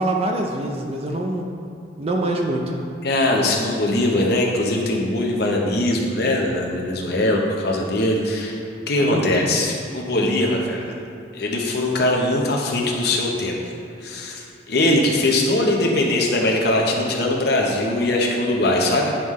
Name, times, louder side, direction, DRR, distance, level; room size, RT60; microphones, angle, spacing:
voice 1, 0.0-1.5 2.0-2.8 9.0-9.3, right 1 dB, 30° right, 1 dB, 0.4 m, -24 dB
voice 2, 3.0-8.6 8.9-10.9 11.3-13.6 14.0-19.1, left 1 dB, 55° left, -1 dB, 0.8 m, -21 dB
9.8 x 3.7 x 3.1 m, 2.7 s
head